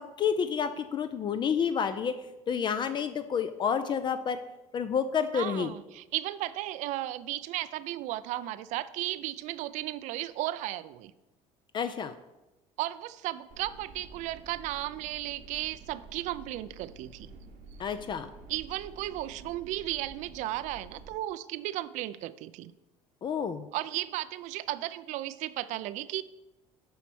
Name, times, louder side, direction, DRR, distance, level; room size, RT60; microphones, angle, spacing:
voice 1, 0.2-2.1 2.5-4.4 4.7-5.7 11.7-12.1 17.8-18.3 23.2-23.7, left 7 dB, 40° left, 10 dB, 0.4 m, -29 dB
voice 2, 5.3-11.1 12.8-17.3 18.5-22.7 23.7-26.2, right 15 dB, 70° right, 15 dB, 0.4 m, -35 dB
sound 1, 13.5-21.1, right 3 dB, 85° right, 1.2 m, -50 dB
6.9 x 4.6 x 6.1 m, 1.0 s
cardioid pair, 115°, 13 cm